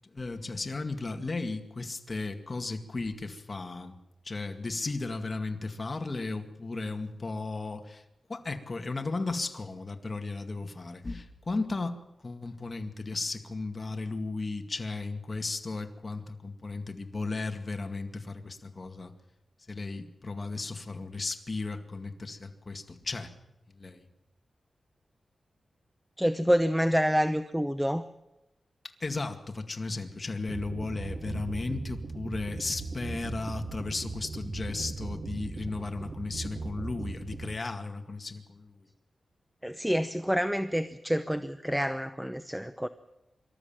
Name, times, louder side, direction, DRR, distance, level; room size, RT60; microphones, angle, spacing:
voice 1, 0.1-4.0 4.2-8.0 8.3-19.1 19.7-23.3 23.7-24.1 29.0-38.9, left 3 dB, 35° left, 5 dB, 2.1 m, -35 dB
voice 2, 26.2-28.0 39.6-42.9, equal, 5° right, 10 dB, 0.8 m, -27 dB
sound 1, 30.5-37.5, right 3 dB, 55° right, 1.1 m, -38 dB
25.5 x 13.5 x 9.0 m, 0.94 s
wide cardioid pair, 95°, 0 cm